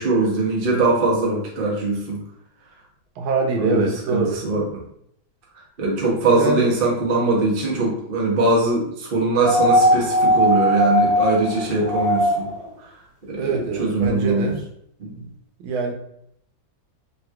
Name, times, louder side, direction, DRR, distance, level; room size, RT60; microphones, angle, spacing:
voice 1, 0.0-2.2 3.6-3.8 4.1-4.6 5.8-12.5 13.3-14.5 15.0-15.2, right 2 dB, 50° right, -3 dB, 0.6 m, -21 dB
voice 2, 3.2-4.4 6.3-6.7 13.4-14.6 15.6-15.9, right 4 dB, 85° right, 2 dB, 1.4 m, -24 dB
sound 1, 9.4-12.6 14.0-14.1, equal, 60° left, 1.4 m, -19 dB
3.4 x 2.9 x 2.3 m, 0.71 s
omnidirectional pair, 2.2 m